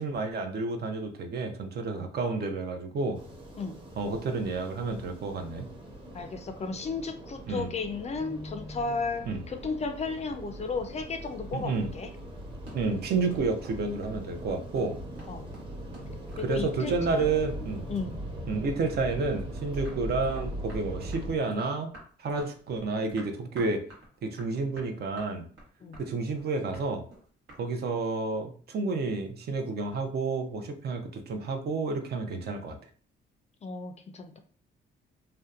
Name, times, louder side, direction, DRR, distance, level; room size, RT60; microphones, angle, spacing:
voice 1, 0.0-3.2 4.0-5.7 7.5-7.7 9.3-9.4 11.5-11.9 12.7-15.0 16.4-17.8 18.5-21.9 22.2-23.8 24.2-25.5 26.0-27.0 27.6-32.8, right 3 dB, 55° right, 5 dB, 0.5 m, -30 dB
sound 1, 3.1-21.3, right 1 dB, 25° right, 0.9 m, -40 dB
voice 2, 6.1-12.1 15.3-15.4 16.4-17.6 17.9-18.1 25.8-26.0 33.6-34.4, left 4 dB, 35° left, 7 dB, 0.4 m, -34 dB
sound 2, 12.3-17.7 17.9-19.0 19.4-27.6, right 1 dB, 80° right, 1.1 m, -50 dB
2.7 x 2.1 x 2.3 m, 0.44 s
cardioid pair, 90°, 20 cm